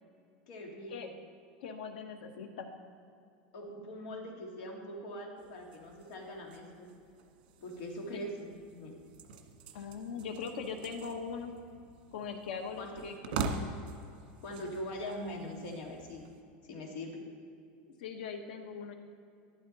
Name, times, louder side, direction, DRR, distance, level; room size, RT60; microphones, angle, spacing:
voice 1, 0.5-1.1 3.5-6.9 7.6-8.5 8.7-9.0 12.8-13.0 14.4-16.3 16.7-17.2, left 1 dB, 50° left, 1 dB, 2.2 m, -42 dB
voice 2, 1.6-2.7 9.7-11.5 12.1-13.3 18.0-18.9, left 5 dB, 85° left, 5 dB, 1.5 m, -40 dB
sound 1, 5.4-16.4, right 4 dB, 70° right, 1.7 m, -44 dB
12.5 x 12.0 x 4.2 m, 2.5 s
supercardioid pair, 180°, 5 cm